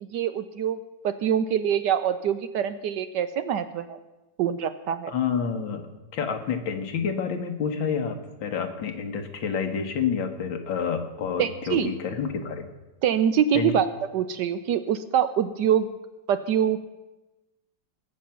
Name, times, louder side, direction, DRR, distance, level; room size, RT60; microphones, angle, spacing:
voice 1, 0.0-0.8 1.0-4.0 4.4-5.1 11.4-11.9 13.0-13.9 14.1-15.9 16.3-16.8, right 9 dB, 75° right, 11 dB, 1.2 m, -24 dB
voice 2, 5.1-5.8 6.1-12.7 13.5-13.7, left 6 dB, 90° left, 5 dB, 2.0 m, -28 dB
20.0 x 7.6 x 5.8 m, 1.1 s
omnidirectional pair, 2.0 m